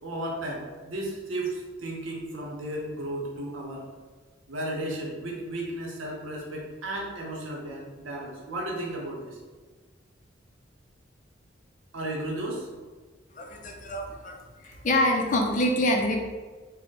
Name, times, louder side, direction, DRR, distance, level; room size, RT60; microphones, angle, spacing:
voice 1, 0.0-3.9 4.5-9.4 11.9-12.7, right 1 dB, 80° right, -2 dB, 0.8 m, -34 dB
voice 2, 13.3-16.2, left 1 dB, 40° left, 2 dB, 0.4 m, -26 dB
3.3 x 2.1 x 4.2 m, 1.4 s
head